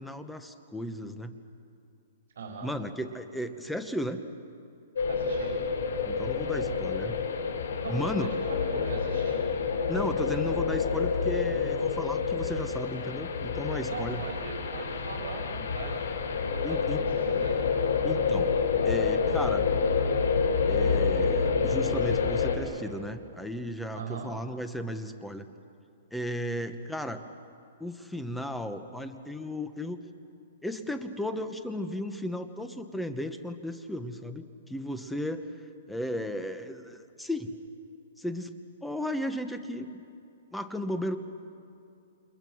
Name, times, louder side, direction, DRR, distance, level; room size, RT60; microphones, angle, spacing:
voice 1, 0.0-1.4 2.6-4.2 6.1-7.2 7.9-8.3 9.9-14.2 16.6-17.1 18.0-18.5 18.8-19.7 20.7-25.5 26.1-27.2 27.8-30.0 30.6-35.5 35.9-37.5 38.2-38.5 38.8-40.0 40.5-41.2, left 1 dB, ahead, 8 dB, 1.0 m, -35 dB
voice 2, 2.3-2.7 5.1-5.5 7.7-9.4 13.8-17.6 23.9-24.3, right 4 dB, 75° right, -1 dB, 4.6 m, -39 dB
sound 1, 5.0-22.6, left 5 dB, 90° left, 4.7 m, -28 dB
29.0 x 28.0 x 6.3 m, 2.6 s
hypercardioid pair, 165°, 0 cm